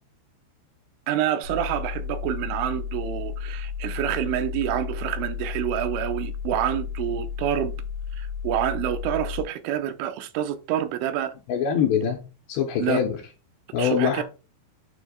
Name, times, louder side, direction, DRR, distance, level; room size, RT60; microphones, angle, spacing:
voice 1, 1.1-7.7 8.2-11.3 12.8-13.0 13.8-14.2, right 11 dB, 90° right, 3.1 m, -27 dB
sound 1, 1.4-9.4, left 7 dB, 70° right, 1.6 m, -33 dB
voice 2, 11.5-12.2 12.5-13.2 13.7-14.2, left 8 dB, 80° left, 2.7 m, -23 dB
8.4 x 3.1 x 4.9 m
omnidirectional pair, 5.5 m